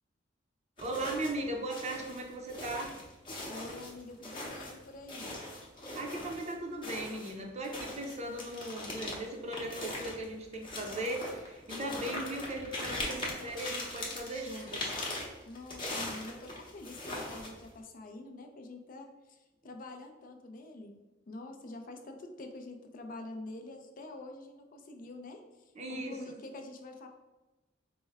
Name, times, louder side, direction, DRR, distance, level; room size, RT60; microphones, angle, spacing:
sound 1, 0.8-1.5 1.7-6.5 6.8-17.8, left 2 dB, 25° left, 0.8 m, -40 dB
voice 1, 0.8-2.9 5.9-14.9 25.8-26.4, right 1 dB, 35° right, 2 dB, 0.6 m, -38 dB
voice 2, 3.5-5.4 15.5-20.9 21.3-27.1, left 2 dB, 45° left, 5 dB, 0.4 m, -46 dB
4.4 x 2.1 x 3.4 m, 1.1 s
head